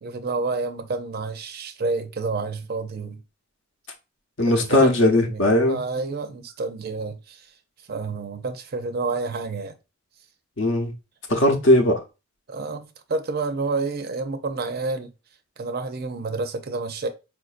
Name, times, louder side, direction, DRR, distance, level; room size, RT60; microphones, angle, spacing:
voice 1, 0.0-3.2 4.5-7.4 7.9-9.7 12.5-15.1 15.6-17.1, right 3 dB, 50° right, 0.5 m, -29 dB
voice 2, 4.4-5.8 10.6-10.9 11.3-12.0, left 1 dB, 65° left, 0.8 m, -18 dB
4.7 x 2.5 x 2.4 m
head